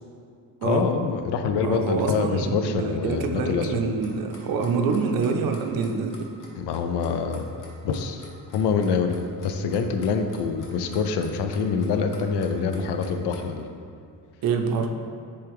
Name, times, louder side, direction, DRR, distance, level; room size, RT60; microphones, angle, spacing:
voice 1, 0.6-3.7 6.6-7.5 7.8-13.7, left 5 dB, 90° left, 7 dB, 0.6 m, -25 dB
voice 2, 1.6-6.3 14.4-14.9, right 5 dB, 60° right, 4 dB, 0.6 m, -26 dB
Clock, 4.0-13.6, left 3 dB, 50° left, 1.0 m, -48 dB
7.7 x 3.5 x 3.5 m, 2.4 s
cardioid pair, 160°, 39 cm